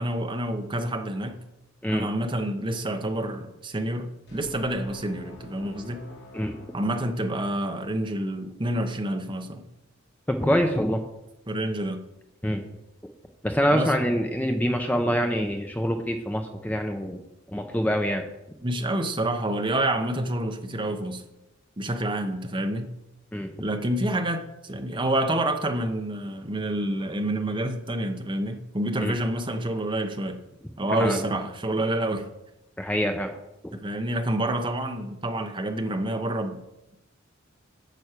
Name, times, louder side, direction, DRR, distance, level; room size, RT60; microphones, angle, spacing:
voice 1, 0.0-1.4 1.9-6.1 6.7-9.7 11.5-12.0 13.7-13.9 18.6-21.2 21.8-22.9 23.6-30.4 30.8-32.3 33.7-36.6, right 1 dB, 25° right, 5 dB, 0.9 m, -28 dB
sound 1, 4.3-7.7, left 1 dB, 55° left, 2.5 m, -47 dB
voice 2, 10.3-11.0 12.4-12.6 13.4-17.2 17.5-18.3 23.3-23.5 29.0-29.2 31.0-31.2 32.8-33.3, equal, 5° left, 4 dB, 0.7 m, -25 dB
9.2 x 7.1 x 6.6 m, 0.90 s
head